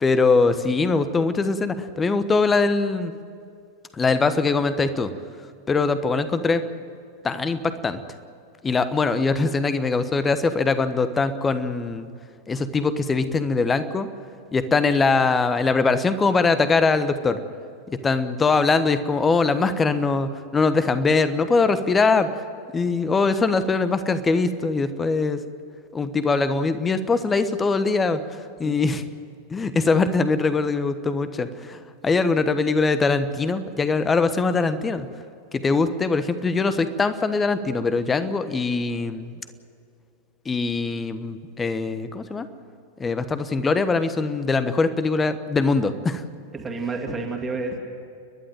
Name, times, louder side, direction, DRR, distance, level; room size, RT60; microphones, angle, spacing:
voice 1, 0.0-3.1 4.0-5.1 5.7-6.6 7.2-8.0 8.6-12.1 12.5-14.1 14.5-17.4 17.9-22.3 22.7-25.4 25.9-28.2 28.6-29.0 29.5-35.1 35.5-39.3 40.4-42.5 43.0-46.2, left 4 dB, 15° left, 12 dB, 1.2 m, -22 dB
voice 2, 46.5-47.8, right 3 dB, 15° right, 0 dB, 2.4 m, -29 dB
30.0 x 11.5 x 9.1 m, 2.4 s
figure-of-eight pair, 90°, 0 cm